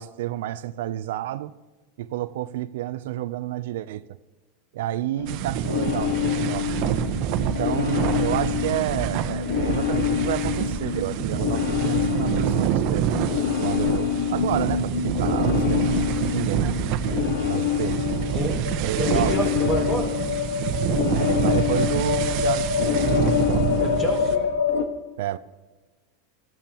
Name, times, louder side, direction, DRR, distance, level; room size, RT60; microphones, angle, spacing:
voice 1, 0.0-1.5 2.0-4.0 4.7-6.7 7.5-13.2 13.6-17.0 17.4-18.0 18.8-19.4 21.1-23.2 25.2-25.4, right 13 dB, 75° right, 0.5 m, -30 dB
sound 1, 5.2-24.8, left 8 dB, 75° left, 1.5 m, -26 dB
sound 2, 5.3-24.4, right 9 dB, 50° right, 1.1 m, -27 dB
voice 2, 19.0-20.1 23.8-24.5, equal, 20° left, 5.3 m, -28 dB
24.0 x 15.0 x 3.0 m
supercardioid pair, 145°, 0 cm